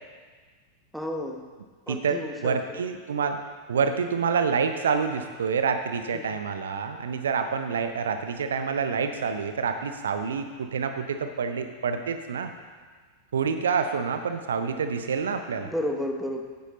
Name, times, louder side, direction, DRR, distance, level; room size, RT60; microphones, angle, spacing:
voice 1, 0.9-1.4 1.9-2.8 6.1-6.3 15.6-16.4, left 1 dB, ahead, 4 dB, 0.9 m, -32 dB
voice 2, 1.9-3.4 3.7-12.5 13.3-15.7, right 5 dB, 65° right, 8 dB, 0.5 m, -27 dB
9.4 x 8.3 x 3.8 m, 1.5 s
figure-of-eight pair, 90°, 0 cm